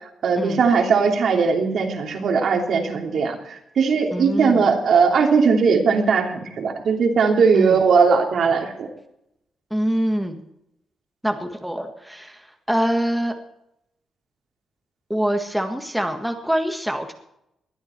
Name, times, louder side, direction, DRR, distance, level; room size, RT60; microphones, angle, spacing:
voice 1, 0.2-8.9, right 5 dB, 65° right, 2 dB, 3.1 m, -19 dB
voice 2, 4.1-4.7 7.5-7.8 9.7-10.4 11.2-13.3 15.1-17.1, equal, ahead, 4 dB, 1.7 m, -25 dB
20.5 x 12.0 x 4.5 m, 0.81 s
cardioid pair, 115°, 0 cm